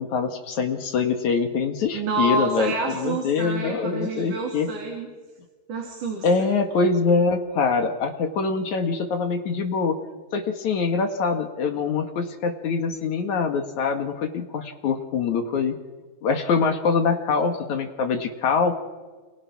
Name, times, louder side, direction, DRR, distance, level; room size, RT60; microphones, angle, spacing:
voice 1, 0.0-4.7 6.2-10.0 10.3-15.8 16.2-18.7, left 5 dB, 55° left, 5 dB, 2.7 m, -24 dB
voice 2, 1.9-5.1 5.7-6.5, right 3 dB, 55° right, 0 dB, 4.9 m, -28 dB
29.5 x 28.0 x 6.0 m, 1.4 s
omnidirectional pair, 4.4 m